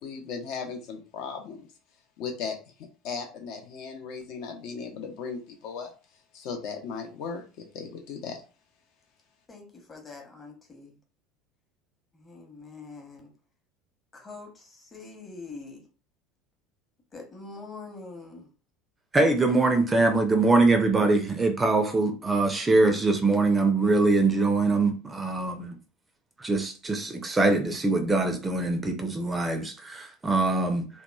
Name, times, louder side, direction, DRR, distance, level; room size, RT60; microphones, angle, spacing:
voice 1, 0.0-1.7 2.2-2.5 3.0-5.9 6.3-7.4 7.7-8.4, left 5 dB, 50° left, 0.4 m, -36 dB
voice 2, 9.5-11.0 12.1-13.3 14.1-15.9 17.1-18.5, left 3 dB, 25° left, 0.9 m, -44 dB
voice 3, 19.1-25.8 26.4-30.9, right 3 dB, 20° right, 0.4 m, -23 dB
2.8 x 2.1 x 2.3 m
figure-of-eight pair, 70°, 0 cm